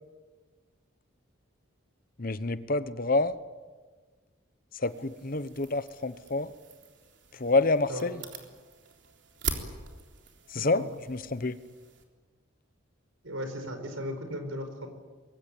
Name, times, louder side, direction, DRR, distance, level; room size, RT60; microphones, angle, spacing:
voice 1, 2.2-3.4 4.7-6.5 7.3-8.2 10.5-11.6, left 3 dB, 45° left, 14 dB, 0.9 m, -28 dB
sound 1, 4.8-12.0, right 5 dB, 60° right, 3.7 m, -42 dB
voice 2, 10.5-10.9 13.2-14.9, equal, 80° right, 6 dB, 5.1 m, -37 dB
25.5 x 22.0 x 9.1 m, 1.4 s
head